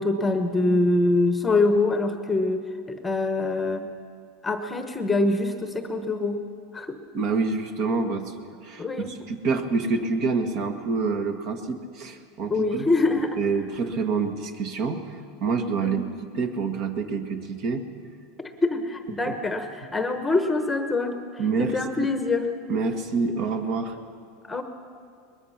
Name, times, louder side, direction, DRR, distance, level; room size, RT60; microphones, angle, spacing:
voice 1, 0.0-2.6 2.9-3.8 4.4-6.4 6.7-7.0 8.8-9.1 12.5-13.4 15.8-16.0 18.4-21.2 21.6-22.5 24.4-24.6, left 2 dB, 10° left, 7 dB, 1.1 m, -24 dB
voice 2, 7.1-8.3 8.6-12.9 13.4-16.0 16.3-17.8 19.3-19.4 21.4-22.1 22.7-24.0, right 4 dB, 45° right, 6 dB, 1.7 m, -27 dB
22.5 x 21.0 x 5.9 m, 2.3 s
supercardioid pair, 155°, 0 cm